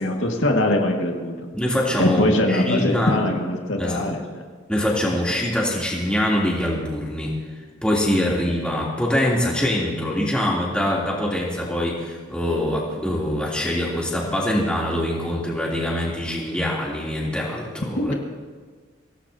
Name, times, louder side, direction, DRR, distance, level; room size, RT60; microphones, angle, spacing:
voice 1, 0.0-1.5 2.0-4.4 8.2-8.3 18.0-18.1, left 1 dB, 80° left, 0 dB, 2.1 m, -22 dB
voice 2, 1.5-3.2 3.8-4.0 4.7-7.3 7.8-18.1, left 1 dB, 5° left, -5 dB, 3.3 m, -24 dB
25.0 x 17.5 x 2.9 m, 1.5 s
head